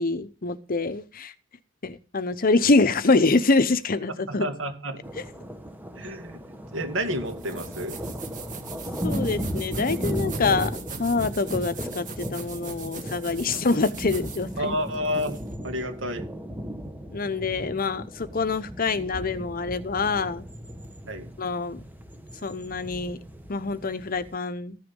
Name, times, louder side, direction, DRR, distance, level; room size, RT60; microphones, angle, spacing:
voice 1, 0.0-1.3 1.8-4.5 5.2-5.3 9.0-14.8 17.1-20.4 21.4-21.8 22.4-23.2 23.5-24.8, left 3 dB, 45° left, 0.8 m, -25 dB
voice 2, 4.3-5.0 5.9-6.4 6.7-8.0 14.6-16.3 21.1-21.3, equal, 90° right, 2.3 m, -30 dB
sound 1, 5.0-24.3, equal, 10° right, 1.3 m, -36 dB
sound 2, 7.3-15.6, right 4 dB, 40° right, 1.9 m, -40 dB
14.5 x 6.7 x 5.3 m
head